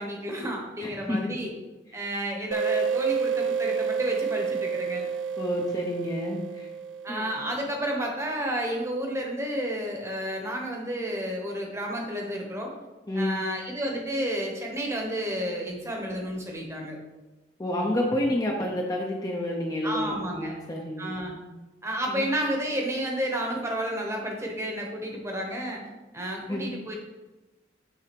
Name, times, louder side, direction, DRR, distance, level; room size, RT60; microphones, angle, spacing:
voice 1, 0.0-1.5 1.9-5.1 7.0-12.7 13.1-17.0 19.8-20.6 21.0-21.3 21.8-25.8 26.1-26.9, equal, 15° right, 0 dB, 1.1 m, -31 dB
voice 2, 0.8-1.3 5.4-6.7 7.1-7.2 13.1-13.4 17.6-21.5 22.1-22.2 26.5-26.6, left 1 dB, 20° left, -1 dB, 0.7 m, -29 dB
sound 1, 2.5-7.8, right 6 dB, 85° right, 0.4 m, -29 dB
7.4 x 3.6 x 5.2 m, 1.1 s
head